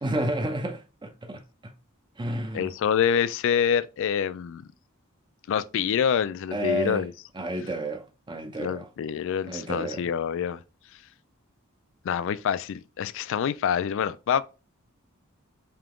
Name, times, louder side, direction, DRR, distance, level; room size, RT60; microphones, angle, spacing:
voice 1, 0.0-1.7 2.2-2.7 6.5-7.1 7.3-8.9 9.5-10.1, right 1 dB, 20° right, 0.6 m, -31 dB
voice 2, 2.5-4.6 5.5-7.1 8.6-10.6 12.0-14.4, left 8 dB, 65° left, 0.3 m, -26 dB
3.6 x 2.9 x 3.6 m
head